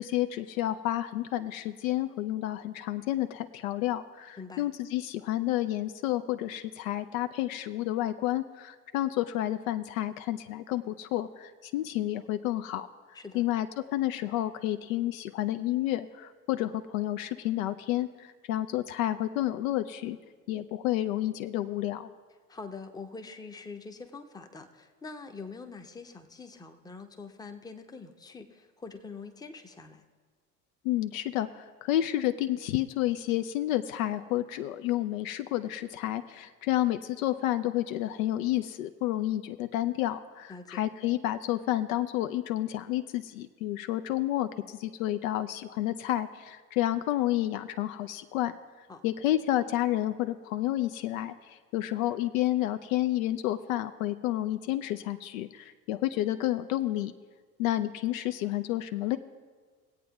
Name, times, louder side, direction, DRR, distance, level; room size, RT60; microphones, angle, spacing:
voice 1, 0.0-12.9 13.3-13.7 13.9-20.2 20.5-22.1 30.8-48.6 49.0-57.1 57.6-59.2, left 14 dB, 65° left, 10 dB, 0.5 m, -30 dB
voice 2, 4.4-4.7 13.1-13.5 22.5-30.0 40.5-40.8 48.9-49.0, left 4 dB, 10° left, 5 dB, 0.7 m, -44 dB
23.5 x 8.4 x 2.3 m, 1.5 s
figure-of-eight pair, 70°, 46 cm